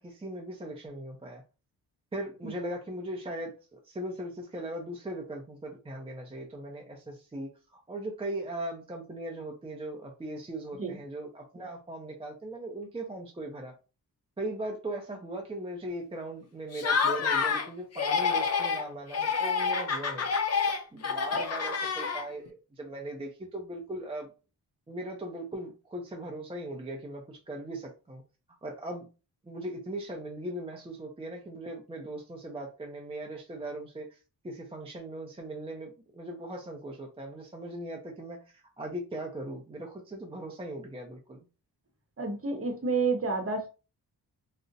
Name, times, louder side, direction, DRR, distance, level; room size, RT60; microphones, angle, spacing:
voice 1, 0.0-1.4 2.1-13.7 14.4-20.3 20.9-24.3 24.9-28.2 28.6-29.1 29.4-41.5, right 1 dB, 15° right, 0 dB, 0.4 m, -39 dB
Laughter, 16.7-17.7 17.9-18.8 19.1-22.5, left 5 dB, 40° left, 0.5 m, -28 dB
voice 2, 42.2-43.7, right 4 dB, 35° right, 4 dB, 0.8 m, -29 dB
2.5 x 2.1 x 3.8 m, 0.32 s
wide cardioid pair, 130°, 40 cm